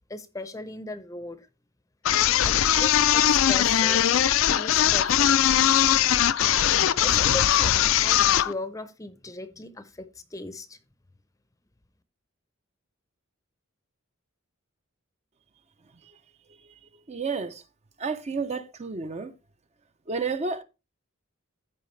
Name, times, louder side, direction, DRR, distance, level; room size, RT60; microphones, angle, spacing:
voice 1, 0.1-1.5 2.4-4.1 4.5-5.5 7.0-10.8, left 2 dB, 15° left, 0.6 m, -38 dB
sound 1, 2.1-8.5, left 10 dB, 70° left, 0.4 m, -21 dB
voice 2, 17.1-17.6 18.0-19.3 20.1-20.6, right 4 dB, 30° right, 0.6 m, -30 dB
14.0 x 4.8 x 3.2 m
head